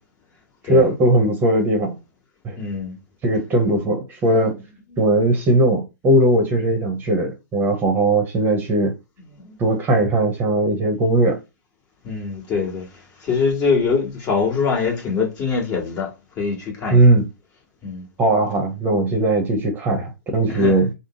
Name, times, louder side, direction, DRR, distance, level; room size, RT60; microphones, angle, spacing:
voice 1, 0.6-2.0 2.4-2.6 3.2-4.6 5.0-8.9 9.6-11.4 16.9-17.3 18.2-20.9, right 1 dB, 20° right, 0.9 m, -18 dB
voice 2, 2.6-3.0 9.5-9.6 12.0-12.9 13.2-16.1 16.4-17.0 17.8-18.0 20.4-20.8, left 5 dB, 30° left, 1.6 m, -23 dB
3.7 x 2.1 x 3.7 m
hypercardioid pair, 120°, 10 cm